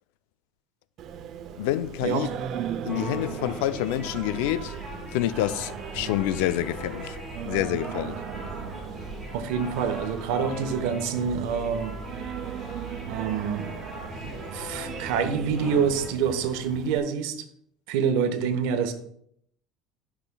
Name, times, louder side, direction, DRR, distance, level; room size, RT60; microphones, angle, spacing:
Singing, 1.0-17.0, right 9 dB, 40° right, 0.5 m, -38 dB
voice 1, 1.6-2.3 2.8-4.8 5.1-7.2 7.5-8.2, left 14 dB, 85° left, 0.3 m, -27 dB
sound 1, 2.9-16.1, equal, 5° left, 3.3 m, -40 dB
voice 2, 9.3-12.0 13.1-13.8 14.2-17.3 17.9-18.9, right 6 dB, 80° right, 1.0 m, -27 dB
13.0 x 5.9 x 2.3 m
cardioid pair, 160°, 0 cm